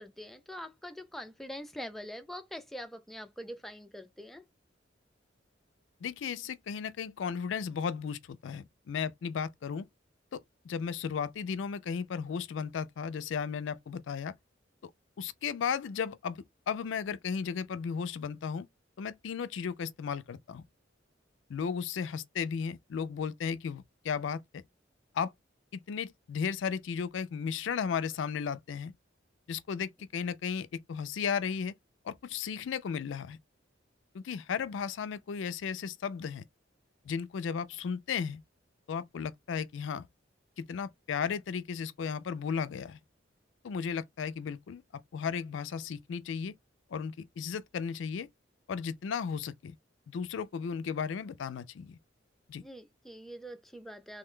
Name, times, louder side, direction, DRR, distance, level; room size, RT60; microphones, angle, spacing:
voice 1, 0.0-4.4 52.6-54.2, equal, ahead, 0.3 m, -44 dB
voice 2, 6.0-9.9 10.3-14.3 15.2-18.7 19.0-20.6 21.5-24.6 25.1-25.3 25.7-28.9 29.5-31.7 32.0-33.4 34.1-36.4 37.1-38.4 38.9-40.1 40.6-43.0 43.6-44.8 45.1-46.6 46.9-48.3 48.7-49.7 50.1-52.0 52.5-52.6, left 6 dB, 75° left, 0.4 m, -35 dB
3.2 x 2.2 x 3.6 m
head